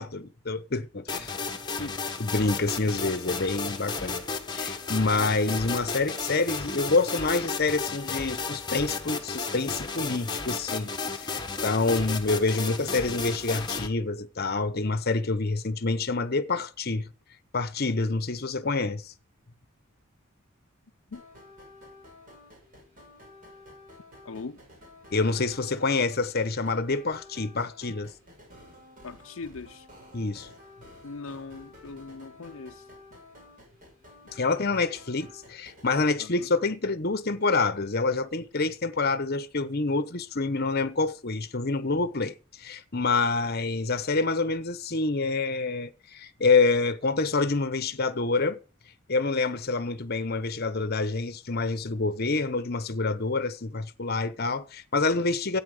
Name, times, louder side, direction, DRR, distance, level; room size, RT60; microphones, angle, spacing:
voice 1, 0.0-1.3 2.2-4.2 4.5-10.9 11.2-17.1 17.5-19.1 25.1-28.1 30.1-30.5 34.3-48.6 49.1-55.6, left 3 dB, 50° left, 1.0 m, -27 dB
sound 1, 1.1-13.9, left 4 dB, 20° left, 1.4 m, -33 dB
sound 2, 21.1-35.9, left 2 dB, 40° right, 6.1 m, -51 dB
voice 2, 24.2-24.6 29.0-29.9 31.0-32.9 36.2-36.5, left 4 dB, 70° left, 0.6 m, -40 dB
13.5 x 8.8 x 5.0 m
head